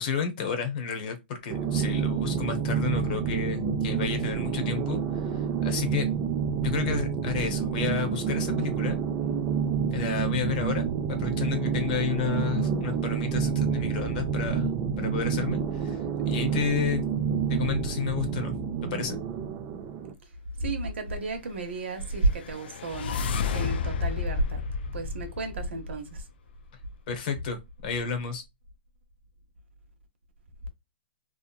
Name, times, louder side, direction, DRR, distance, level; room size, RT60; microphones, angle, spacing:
voice 1, 0.0-6.1 6.6-9.0 9.9-17.1 17.5-18.5 18.8-19.2 27.1-28.4, left 6 dB, 45° left, 0.8 m, -31 dB
sound 1, 1.5-20.1, right 7 dB, 25° right, 0.4 m, -28 dB
voice 2, 20.6-24.6 24.9-26.3, right 2 dB, 85° right, 0.8 m, -31 dB
sound 2, 22.1-26.2, left 6 dB, 60° left, 0.3 m, -32 dB
2.9 x 2.4 x 2.3 m
hypercardioid pair, 155°, 6 cm